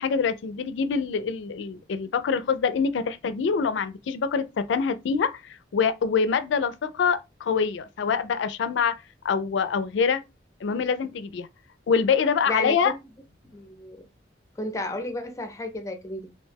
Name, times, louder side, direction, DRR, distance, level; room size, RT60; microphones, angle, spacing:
voice 1, 0.0-9.0 9.2-10.2 10.6-11.5 11.9-12.9, left 6 dB, 80° left, 0.3 m, -25 dB
voice 2, 12.5-12.9 13.5-14.0 14.6-16.3, left 2 dB, 15° left, 0.5 m, -32 dB
2.6 x 2.1 x 3.2 m
head